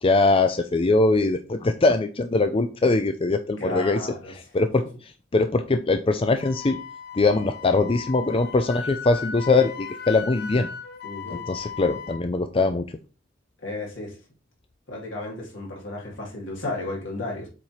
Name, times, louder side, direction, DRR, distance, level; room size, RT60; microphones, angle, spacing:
voice 1, 0.0-6.8 7.1-10.7 11.3-12.9, left 3 dB, 30° left, 0.5 m, -22 dB
voice 2, 3.6-4.3 11.0-11.4 13.6-14.2 14.9-17.5, left 2 dB, 70° left, 3.1 m, -33 dB
Wind instrument woodwind instrument, 6.4-12.2, left 6 dB, 55° left, 0.9 m, -37 dB
7.5 x 4.3 x 4.9 m
head